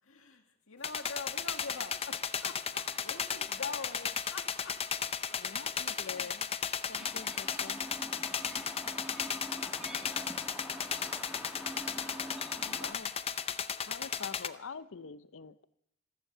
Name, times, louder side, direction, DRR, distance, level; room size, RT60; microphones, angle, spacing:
voice 1, 0.0-4.7 5.3-5.4 5.9-6.3, left 4 dB, 90° left, 4 dB, 2.0 m, -44 dB
sound 1, 0.8-14.5, left 7 dB, 30° left, 0.6 m, -35 dB
voice 2, 2.7-3.9 5.6-7.1 10.2-10.3, right 2 dB, 80° right, -5 dB, 5.8 m, -63 dB
voice 3, 5.4-6.5 6.9-7.8 12.6-13.1 13.9-15.6, left 5 dB, 70° left, 15 dB, 0.7 m, -45 dB
Chirp tweet, 7.0-12.9, equal, 5° right, 1.5 m, -45 dB
14.5 x 14.0 x 6.8 m, 0.81 s
head